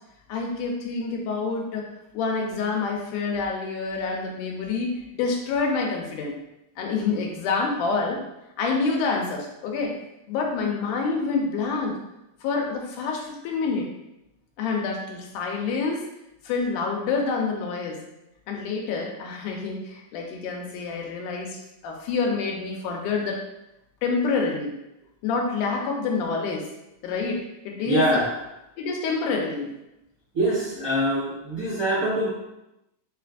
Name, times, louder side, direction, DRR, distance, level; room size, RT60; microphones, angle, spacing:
voice 1, 0.3-1.8 2.1-6.4 6.8-8.2 8.6-9.9 10.3-12.0 12.4-13.9 14.6-16.0 16.4-18.0 18.5-23.4 24.0-24.8 25.2-26.7 27.0-28.2 28.8-29.7, left 4 dB, 85° left, 1 dB, 2.2 m, -27 dB
voice 2, 27.8-28.4 30.3-32.3, right 1 dB, 40° right, -9 dB, 1.3 m, -24 dB
5.2 x 4.1 x 2.5 m, 0.89 s
omnidirectional pair, 3.6 m